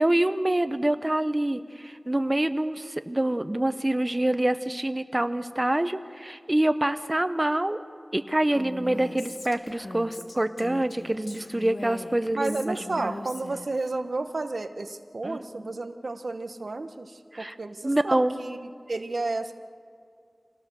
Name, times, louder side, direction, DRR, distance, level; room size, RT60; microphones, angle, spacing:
voice 1, 0.0-7.8 8.1-13.2 15.2-15.7 17.3-17.6 17.8-18.4, right 1 dB, 30° right, 10 dB, 0.9 m, -26 dB
Female speech woman speaking, 8.5-13.9, left 2 dB, 85° left, 1.5 m, -40 dB
voice 2, 12.3-18.6 18.9-19.5, right 3 dB, 85° right, 8 dB, 0.9 m, -32 dB
25.5 x 18.0 x 6.9 m, 2.3 s
wide cardioid pair, 40°, 0 cm